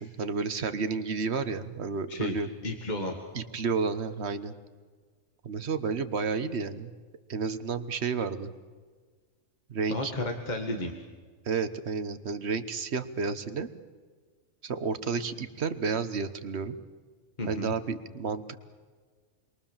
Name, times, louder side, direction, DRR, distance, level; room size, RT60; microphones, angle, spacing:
voice 1, 0.0-2.5 3.3-4.5 5.4-6.9 7.3-8.5 9.7-10.1 11.4-13.7 14.6-16.8 17.5-18.6, right 5 dB, 55° right, 10 dB, 1.4 m, -31 dB
voice 2, 2.6-3.2 9.9-10.9 17.4-17.7, left 1 dB, 35° left, 3 dB, 2.1 m, -32 dB
28.5 x 22.5 x 7.3 m, 1.5 s
omnidirectional pair, 1.4 m